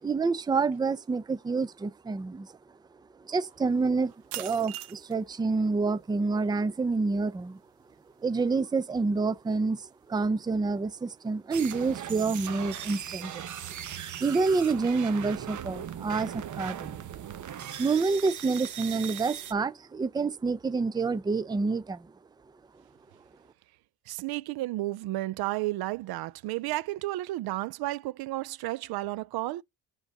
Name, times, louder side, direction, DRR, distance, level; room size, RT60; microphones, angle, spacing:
voice 1, 0.0-2.5 3.2-7.6 8.2-13.4 14.2-17.0 17.8-22.1, right 4 dB, 10° right, 0.5 m, -28 dB
sound 1, 3.7-13.3, right 15 dB, 85° right, 0.9 m, -48 dB
sound 2, 11.5-19.5, right 9 dB, 45° right, 1.1 m, -39 dB
voice 2, 24.1-29.6, right 17 dB, 65° right, 0.5 m, -32 dB
7.8 x 3.8 x 5.2 m
cardioid pair, 105°, 40 cm